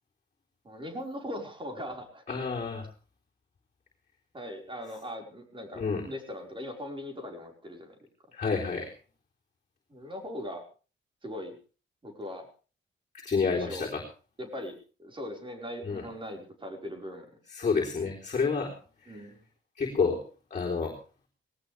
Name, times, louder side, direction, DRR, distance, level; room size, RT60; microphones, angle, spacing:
voice 1, 0.6-2.2 4.3-7.9 9.9-10.6 11.2-11.6 12.0-12.5 13.5-13.8 14.4-14.7 15.0-17.3 19.1-19.4, left 1 dB, 25° right, 2 dB, 5.0 m, -39 dB
voice 2, 2.3-2.9 5.7-6.1 8.3-8.9 13.2-14.0 15.8-16.0 17.5-18.7 19.0-19.2 19.8-20.2 20.5-21.0, left 5 dB, 35° left, -1 dB, 4.0 m, -29 dB
19.5 x 18.5 x 3.5 m, 0.37 s
wide cardioid pair, 140°, 21 cm